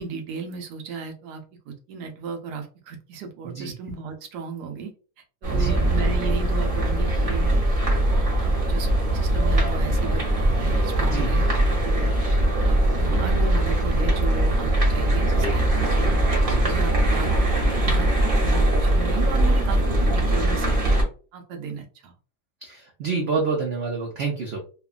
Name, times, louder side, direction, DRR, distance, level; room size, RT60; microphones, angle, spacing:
voice 1, 0.0-4.9 5.4-7.5 8.4-12.1 12.6-16.2 16.6-22.1, right 5 dB, 90° right, 4 dB, 1.2 m, -35 dB
sound 1, 5.4-21.0, right 1 dB, 40° right, 0.8 m, -21 dB
voice 2, 11.0-11.3 11.7-11.8 16.4-16.6 22.6-24.6, right 4 dB, 70° right, 0 dB, 0.6 m, -28 dB
2.9 x 2.2 x 2.3 m, 0.38 s
omnidirectional pair, 1.7 m